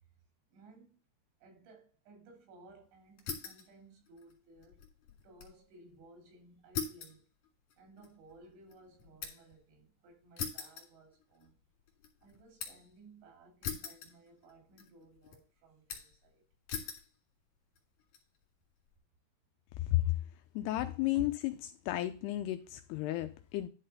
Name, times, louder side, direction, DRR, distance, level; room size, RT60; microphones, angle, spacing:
voice 1, 0.5-1.0 1.4-4.8 5.2-7.2 7.8-11.5 12.2-16.4 19.8-19.9 21.2-21.3 21.8-22.0, right 2 dB, 85° right, 5.1 m, -57 dB
sound 1, 3.2-3.7 4.1-5.6 5.9-6.0 6.7-9.6 10.4-11.5 11.9-12.9 13.6-14.5 14.8-15.4 15.9-16.3 16.7-17.1 17.8-18.2, left 6 dB, 50° left, 3.1 m, -42 dB
voice 2, 20.6-21.5 21.9-23.7, left 16 dB, 85° left, 2.4 m, -32 dB
11.0 x 4.0 x 5.3 m
omnidirectional pair, 5.1 m